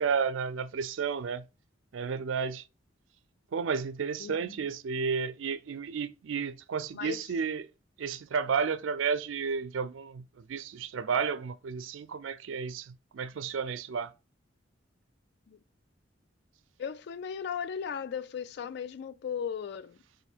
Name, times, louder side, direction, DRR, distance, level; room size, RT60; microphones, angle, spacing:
voice 1, 0.0-1.4 1.9-2.6 3.5-7.6 8.0-10.2 10.5-14.1, right 6 dB, 90° right, 0.4 m, -32 dB
voice 2, 4.2-4.6 6.9-7.3 15.5-15.6 16.8-20.0, left 7 dB, 60° left, 0.3 m, -36 dB
4.1 x 2.6 x 2.8 m
head